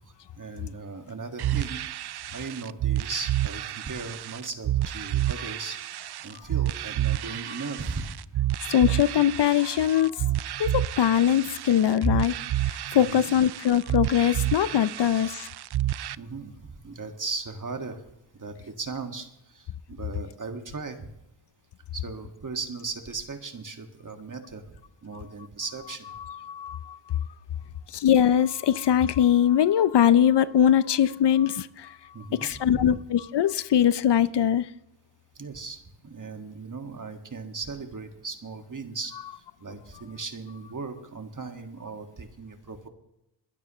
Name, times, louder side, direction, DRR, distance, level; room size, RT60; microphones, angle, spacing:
voice 1, 0.4-1.8 2.3-8.0 12.9-13.2 16.1-18.0 18.4-21.1 21.9-26.0 32.1-32.9 35.4-39.1 39.6-42.9, right 4 dB, 40° right, 1.9 m, -37 dB
sound 1, 1.4-16.1, right 14 dB, 60° right, 0.5 m, -30 dB
voice 2, 8.7-10.2 10.6-12.3 12.7-15.5 26.3-27.0 27.9-32.0 32.3-34.7, left 10 dB, 60° left, 0.6 m, -22 dB
21.5 x 12.0 x 3.1 m
cardioid pair, 55°, 46 cm